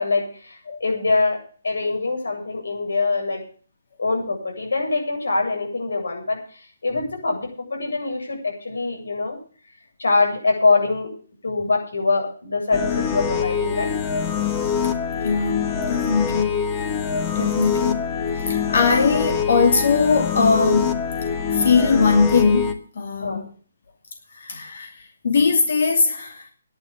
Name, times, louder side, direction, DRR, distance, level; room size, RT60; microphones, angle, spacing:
voice 1, 0.0-1.4 1.6-3.4 4.0-9.4 10.0-11.1 11.4-13.9 23.2-23.4, left 3 dB, 90° left, 7.7 m, -23 dB
sound 1, 12.7-22.7, left 7 dB, 20° left, 1.3 m, -24 dB
voice 2, 15.2-15.6 15.9-16.7 17.3-18.0 18.4-21.0 21.5-23.5 24.3-26.5, left 4 dB, 60° left, 2.6 m, -20 dB
11.0 x 9.2 x 8.6 m
hypercardioid pair, 165°, 0 cm